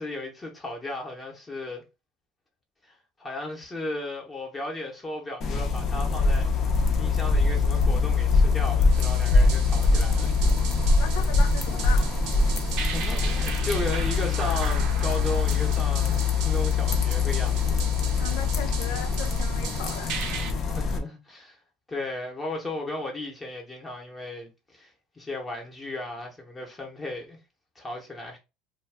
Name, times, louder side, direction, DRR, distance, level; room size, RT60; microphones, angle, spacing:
voice 1, 0.0-1.8 2.8-2.9 3.2-6.5 7.0-10.4 12.8-17.8 20.7-21.6 21.9-27.4 27.7-28.4, left 1 dB, 20° left, 0.9 m, -35 dB
sound 1, 5.4-21.0, left 4 dB, 45° left, 0.7 m, -23 dB
sound 2, 8.9-20.5, right 7 dB, 70° right, 0.7 m, -38 dB
voice 2, 11.0-12.1 18.2-20.1, left 8 dB, 80° left, 0.4 m, -37 dB
2.3 x 2.2 x 3.3 m
supercardioid pair, 105°, 0 cm